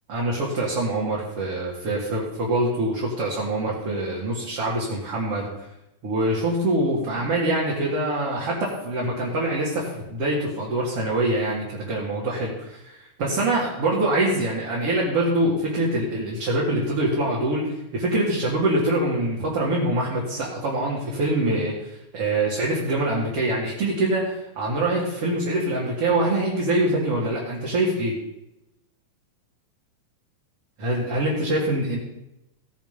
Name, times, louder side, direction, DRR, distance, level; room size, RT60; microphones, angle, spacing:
voice 1, 0.1-5.7 6.0-28.1 30.8-32.0, right 1 dB, 45° right, -5 dB, 3.0 m, -24 dB
16.5 x 9.1 x 5.5 m, 0.89 s
omnidirectional pair, 4.1 m